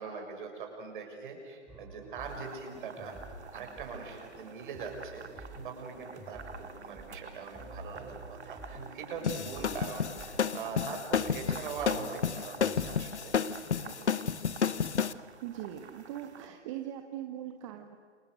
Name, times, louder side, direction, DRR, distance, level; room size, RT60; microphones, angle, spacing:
voice 1, 0.0-3.2 3.5-13.4 13.8-14.1, right 5 dB, 45° right, 3 dB, 6.8 m, -42 dB
sound 1, 1.7-13.2, right 2 dB, 5° right, 3.6 m, -49 dB
sound 2, 2.2-16.5, right 5 dB, 65° right, 2.3 m, -50 dB
sound 3, 9.2-15.1, left 7 dB, 70° left, 1.1 m, -31 dB
voice 2, 15.4-18.0, right 11 dB, 25° right, 5 dB, 1.4 m, -40 dB
29.0 x 26.5 x 6.5 m, 2.1 s
figure-of-eight pair, 135°, 36 cm